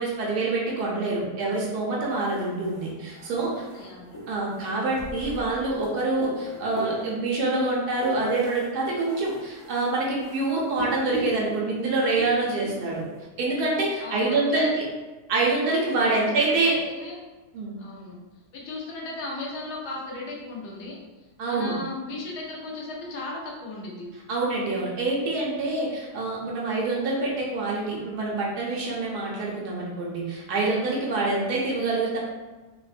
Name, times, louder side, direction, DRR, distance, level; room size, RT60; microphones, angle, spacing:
voice 1, 0.0-3.5 4.3-13.0 13.4-14.8 15.3-16.7 17.5-17.8 21.4-21.8 24.3-32.2, right 2 dB, 80° right, -3 dB, 1.2 m, -26 dB
sound 1, 2.0-13.2, right 1 dB, 55° left, 0.3 m, -40 dB
voice 2, 3.6-4.0 14.0-14.2 14.5-14.7 16.0-17.1 17.8-18.2 18.5-21.0 21.4-24.1, left 2 dB, 80° left, -2 dB, 1.2 m, -36 dB
3.6 x 2.0 x 2.4 m, 1.2 s
omnidirectional pair, 1.7 m